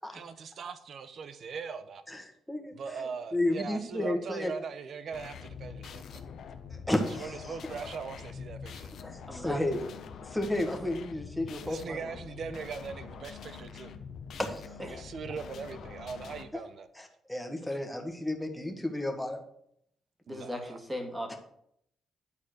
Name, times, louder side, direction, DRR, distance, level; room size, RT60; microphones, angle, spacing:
voice 1, 0.1-2.2 2.7-6.2 7.2-8.9 11.6-13.9 14.9-16.9 20.3-20.8, right 5 dB, 55° right, 0.8 m, -40 dB
voice 2, 2.1-4.5 6.7-7.5 9.0-9.8 10.2-12.1 14.4-14.8 16.5-16.6 16.9-19.4 21.3-21.4, left 1 dB, 5° left, 1.7 m, -33 dB
sound 1, 5.1-16.4, left 6 dB, 65° left, 0.9 m, -45 dB
voice 3, 9.3-9.6 20.3-21.4, equal, 15° right, 2.2 m, -37 dB
10.0 x 4.3 x 6.5 m
cardioid pair, 90°, 0 cm